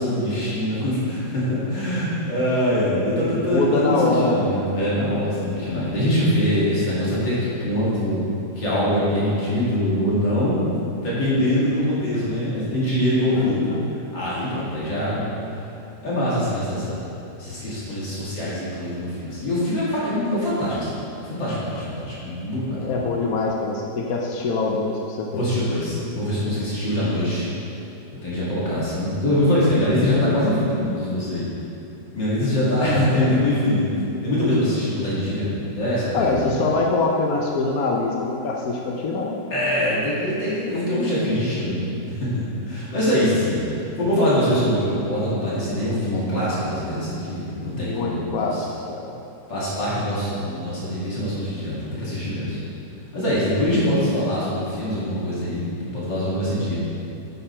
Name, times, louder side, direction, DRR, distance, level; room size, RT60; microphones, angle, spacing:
voice 1, 0.0-8.3 8.6-13.7 14.1-15.3 16.0-17.0 17.4-21.0 21.2-23.0 25.3-27.4 28.2-31.5 32.1-33.9 34.2-36.5 39.5-48.6 49.5-52.6 53.1-56.8, left 1 dB, 80° left, -9 dB, 2.9 m, -23 dB
voice 2, 3.3-4.4 13.3-13.9 22.7-25.4 32.7-33.3 36.1-39.4 47.6-49.2 56.2-56.3, left 3 dB, 60° left, 0 dB, 1.1 m, -24 dB
9.1 x 7.0 x 4.4 m, 2.8 s
omnidirectional pair, 1.9 m